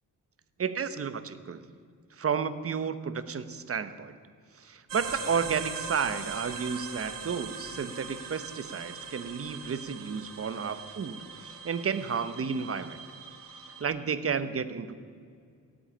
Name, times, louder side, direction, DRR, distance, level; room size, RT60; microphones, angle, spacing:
voice 1, 0.6-1.6 2.2-4.1 4.6-13.0 13.8-14.9, right 6 dB, 40° right, 12 dB, 1.0 m, -32 dB
sound 1, 4.9-13.8, right 5 dB, 70° right, 2.9 m, -41 dB
17.5 x 8.3 x 9.8 m, 2.2 s
cardioid pair, 115°, 34 cm